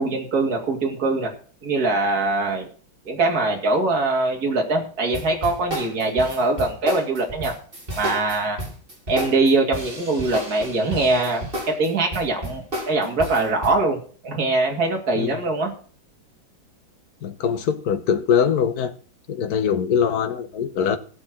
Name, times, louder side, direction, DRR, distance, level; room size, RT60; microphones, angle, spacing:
voice 1, 0.0-1.3 1.6-2.7 3.0-7.5 7.9-8.6 9.1-11.5 11.8-14.0 14.2-15.7, right 2 dB, 45° right, 3.0 m, -22 dB
sound 1, 5.1-13.8, equal, 25° right, 4.4 m, -32 dB
voice 2, 17.2-18.9 19.3-21.0, left 7 dB, 55° left, 1.5 m, -22 dB
16.0 x 6.8 x 6.2 m
omnidirectional pair, 2.2 m